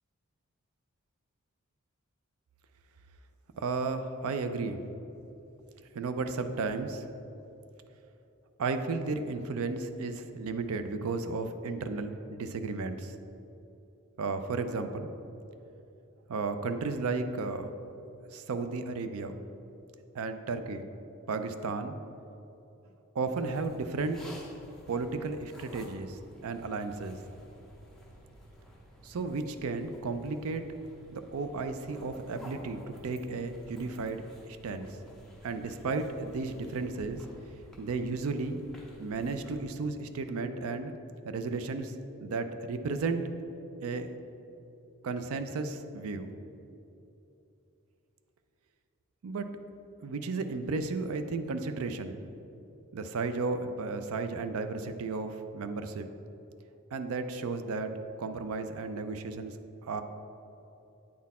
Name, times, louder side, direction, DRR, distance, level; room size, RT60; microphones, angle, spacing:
voice 1, 3.6-4.8 5.9-7.0 8.6-13.2 14.2-15.1 16.3-17.7 18.3-19.4 20.1-20.9 21.3-21.9 23.1-24.2 24.9-27.2 29.0-30.6 31.1-34.2 34.5-34.9 35.4-37.3 37.8-38.6 39.0-40.9 41.2-41.9 42.2-43.3 43.8-44.1 45.0-46.3 49.2-49.5 50.0-52.1 52.9-56.1 56.9-57.9 58.2-60.0, right 3 dB, 80° right, 9 dB, 0.4 m, -34 dB
sound 1, 23.3-39.7, equal, ahead, 0.7 m, -52 dB
8.5 x 4.1 x 4.1 m, 2.9 s
head